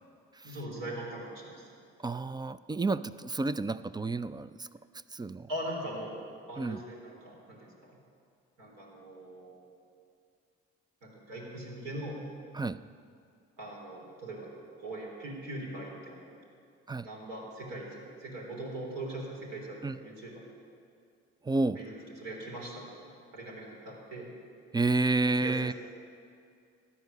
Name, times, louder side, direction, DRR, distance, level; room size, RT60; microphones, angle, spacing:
voice 1, 0.4-1.7 5.5-6.2 6.5-8.0 8.6-9.7 11.0-12.2 13.6-14.5 14.8-16.3 17.0-20.4 21.8-23.0 23.3-24.3 25.3-25.7, right 1 dB, 70° right, -2 dB, 3.6 m, -41 dB
voice 2, 2.0-4.7 5.1-5.5 6.6-6.8 12.5-12.8 16.9-17.1 19.8-20.0 21.5-21.8 24.7-25.7, right 3 dB, 15° right, 15 dB, 0.3 m, -30 dB
13.5 x 9.7 x 6.5 m, 2.4 s
hypercardioid pair, 50°, 33 cm